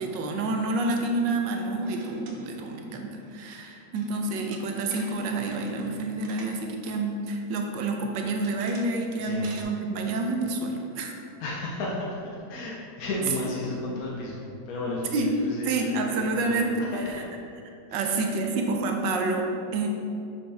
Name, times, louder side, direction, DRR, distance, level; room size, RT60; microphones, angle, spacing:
voice 1, 0.0-11.1 15.1-15.3 15.6-17.2 17.9-19.9, right 2 dB, 85° right, 2 dB, 1.3 m, -28 dB
sound 1, 1.7-6.9 7.3-7.4 8.1-9.0 9.2-9.6, right 3 dB, 70° right, 1.4 m, -49 dB
voice 2, 9.2-9.5 11.4-12.2 12.5-16.6 17.9-18.1, left 2 dB, 60° left, -4 dB, 1.1 m, -33 dB
6.8 x 5.4 x 3.3 m, 2.6 s
omnidirectional pair, 1.9 m